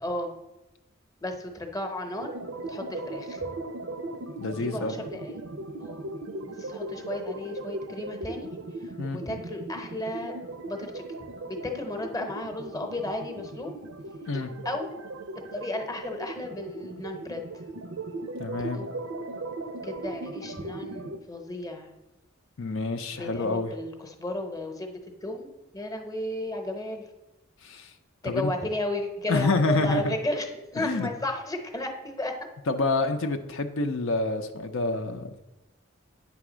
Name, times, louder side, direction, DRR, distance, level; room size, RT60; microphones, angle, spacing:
voice 1, 0.0-0.3 1.2-2.3 2.7-3.5 4.6-5.4 5.8-6.1 6.6-8.5 9.1-10.3 10.7-13.8 14.3-15.0 15.5-17.4 18.5-18.9 19.8-21.9 23.1-27.1 28.2-32.3, left 1 dB, 20° left, 4 dB, 0.8 m, -34 dB
sound 1, 2.2-21.2, right 2 dB, 90° right, 0.6 m, -38 dB
voice 2, 4.4-4.9 9.0-9.2 14.3-14.5 18.4-18.8 22.6-23.7 27.6-27.9 28.2-28.5 29.3-30.1 30.8-31.1 32.7-35.4, left 3 dB, 80° left, 6 dB, 0.6 m, -27 dB
8.7 x 3.5 x 6.1 m, 0.99 s
head